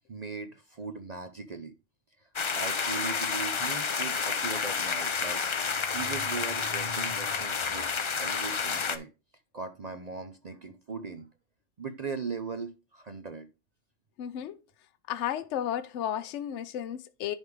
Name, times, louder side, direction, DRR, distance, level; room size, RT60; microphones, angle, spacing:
voice 1, 0.1-1.7 2.5-7.9 8.2-9.1 9.5-11.3 11.8-13.5, right 4 dB, 45° right, 0.6 m, -39 dB
sound 1, 2.4-9.0, left 5 dB, 45° left, 0.3 m, -30 dB
voice 2, 14.2-14.5 15.1-17.3, left 10 dB, 70° left, 1.0 m, -33 dB
10.5 x 3.6 x 4.7 m
omnidirectional pair, 1.3 m